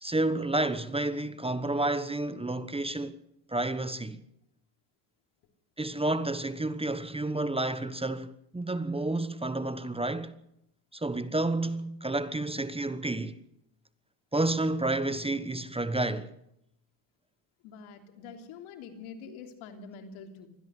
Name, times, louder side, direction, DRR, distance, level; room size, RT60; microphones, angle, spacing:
voice 1, 0.0-3.1 3.5-4.2 5.8-10.4 10.9-13.4 14.3-16.3, right 2 dB, 10° right, 1.1 m, -30 dB
voice 2, 17.6-20.5, left 5 dB, 80° left, 3.4 m, -45 dB
24.0 x 16.5 x 6.5 m
supercardioid pair, 90°, 48 cm